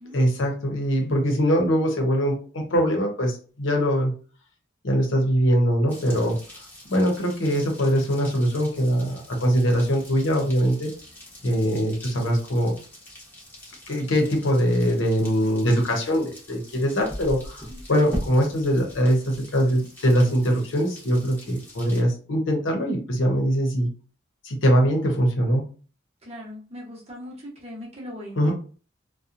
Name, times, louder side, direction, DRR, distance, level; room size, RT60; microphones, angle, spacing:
voice 1, 0.1-4.1 4.8-6.4 6.8-10.9 11.4-12.8 13.9-23.9 24.4-25.7 28.4-28.5, equal, 75° left, 1 dB, 0.8 m, -22 dB
sound 1, 5.9-22.0, equal, 10° left, 0.9 m, -41 dB
voice 2, 17.7-18.1 26.2-28.5, left 1 dB, 30° right, -3 dB, 0.9 m, -40 dB
2.8 x 2.2 x 2.5 m, 0.39 s
head